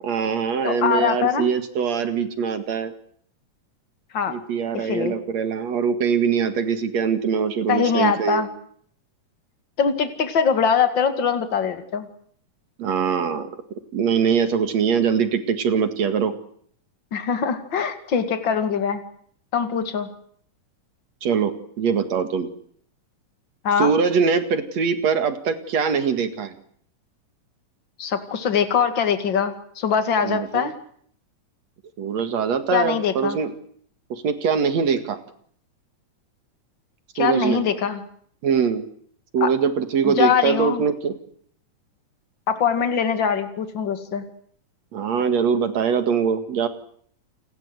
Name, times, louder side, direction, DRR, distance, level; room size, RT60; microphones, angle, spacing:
voice 1, 0.0-2.9 4.3-8.5 12.8-13.5 13.9-16.3 21.2-22.5 23.8-26.5 30.2-30.7 32.0-33.5 34.1-35.2 37.2-37.6 38.4-38.8 39.3-41.2 44.9-46.7, right 6 dB, 60° right, 9 dB, 3.0 m, -22 dB
voice 2, 0.6-1.5 4.1-4.3 4.7-5.1 7.7-8.5 9.8-12.1 17.1-19.0 19.5-20.1 23.6-23.9 28.0-30.7 32.7-33.4 37.1-38.0 39.4-39.5 40.0-40.8 42.5-44.2, left 7 dB, 40° left, 8 dB, 2.6 m, -22 dB
29.0 x 21.0 x 8.1 m, 0.64 s
omnidirectional pair, 3.7 m